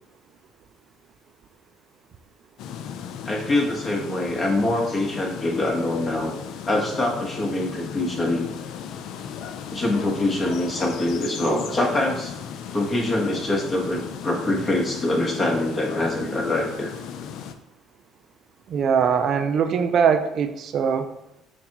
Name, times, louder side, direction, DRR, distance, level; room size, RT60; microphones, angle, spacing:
sound 1, 2.6-17.5, left 8 dB, 70° left, 0.3 m, -36 dB
voice 1, 3.2-6.3 6.7-8.5 9.7-12.3 12.7-16.9, left 1 dB, 30° left, 0 dB, 1.3 m, -24 dB
voice 2, 18.7-21.1, right 7 dB, 55° right, 9 dB, 0.3 m, -21 dB
6.9 x 2.3 x 2.9 m, 0.86 s
supercardioid pair, 65°, 0 cm